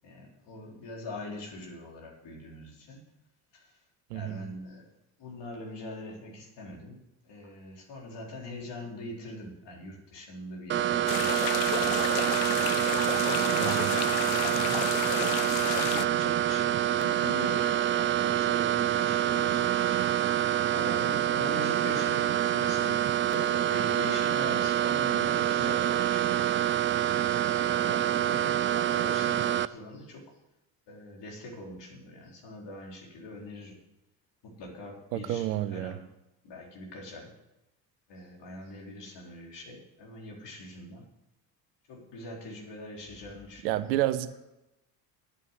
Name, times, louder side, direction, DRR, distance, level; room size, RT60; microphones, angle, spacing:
voice 1, 0.0-3.0 3.5-3.7 4.1-4.8 5.2-7.0 7.2-12.6 13.2-14.0 14.5-19.7 20.7-27.2 27.5-30.3 30.9-33.8 34.4-36.0 36.4-37.3 38.1-41.0 41.9-43.9, left 1 dB, 60° left, -1 dB, 4.3 m, -42 dB
voice 2, 4.1-4.4 13.6-13.9 35.1-36.0 43.6-44.5, right 14 dB, 80° right, 13 dB, 0.9 m, -30 dB
sound 1, 10.7-29.7, right 11 dB, 30° right, 0.3 m, -26 dB
sound 2, 11.1-16.1, left 15 dB, 75° left, 0.7 m, -33 dB
10.0 x 9.4 x 8.1 m, 0.93 s
hypercardioid pair, 55°, 49 cm